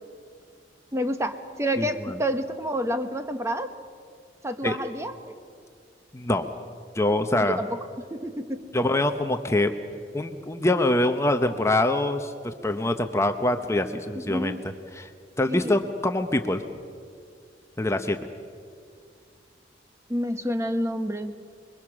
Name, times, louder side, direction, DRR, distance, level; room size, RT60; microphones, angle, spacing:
voice 1, 0.9-3.7 4.4-5.4 7.4-7.8 8.1-8.7 14.1-14.6 15.5-15.8 20.1-21.4, equal, 15° right, 8 dB, 1.0 m, -29 dB
voice 2, 1.8-2.2 4.6-4.8 6.1-6.5 6.9-7.6 8.7-9.7 10.1-14.6 14.9-15.1 15.4-16.6 17.8-18.2, left 1 dB, 15° left, 7 dB, 0.8 m, -24 dB
26.0 x 22.5 x 6.2 m, 2.2 s
head